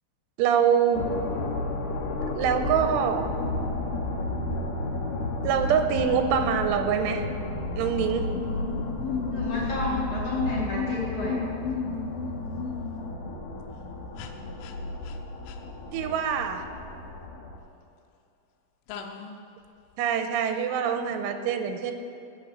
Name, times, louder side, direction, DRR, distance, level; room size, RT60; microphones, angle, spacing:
voice 1, 0.4-1.1 2.3-3.3 5.4-7.3 7.8-8.3 15.9-16.6 20.0-21.9, right 8 dB, 90° right, 6 dB, 3.3 m, -25 dB
sound 1, 0.9-17.6, left 2 dB, 65° left, 2.1 m, -33 dB
sound 2, 8.3-13.1 14.2-14.3 14.6-14.7 15.0-15.2 15.5-15.6 18.9-19.4, left 6 dB, 90° left, 3.3 m, -33 dB
voice 2, 9.3-11.4, left 1 dB, 40° left, -6 dB, 5.5 m, -32 dB
20.0 x 7.5 x 6.9 m, 2.5 s
omnidirectional pair, 5.6 m